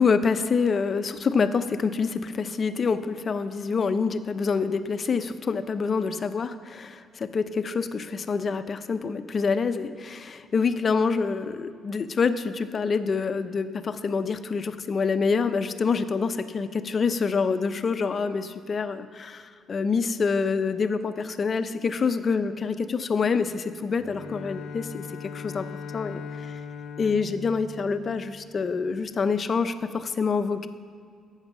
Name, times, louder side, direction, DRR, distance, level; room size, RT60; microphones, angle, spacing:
voice 1, 0.0-25.7 25.9-26.6 27.0-30.7, left 5 dB, 45° left, 10 dB, 0.7 m, -26 dB
Bowed string instrument, 24.0-28.6, left 5 dB, 80° left, 0.8 m, -39 dB
11.0 x 8.2 x 6.2 m, 2.2 s
cardioid pair, 90°, 0 cm